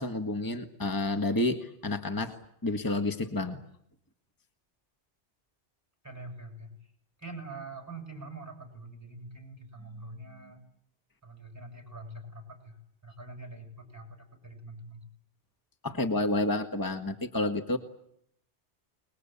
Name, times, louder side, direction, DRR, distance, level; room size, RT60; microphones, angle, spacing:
voice 1, 0.0-3.6 15.8-17.8, left 2 dB, 20° left, 6 dB, 1.6 m, -30 dB
voice 2, 6.0-6.8 7.2-10.6 11.2-15.1, right 2 dB, 15° right, 5 dB, 6.4 m, -45 dB
28.0 x 21.0 x 8.5 m, 0.73 s
omnidirectional pair, 1.1 m